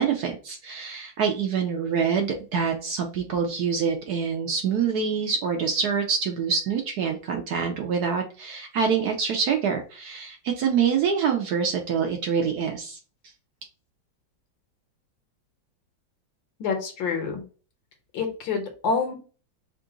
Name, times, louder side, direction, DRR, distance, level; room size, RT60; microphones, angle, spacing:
voice 1, 0.0-13.0, right 6 dB, 70° right, 3 dB, 1.0 m, -26 dB
voice 2, 16.6-17.4 18.1-19.1, left 5 dB, 75° left, 4 dB, 1.7 m, -27 dB
3.7 x 2.4 x 3.8 m, 0.37 s
omnidirectional pair, 2.1 m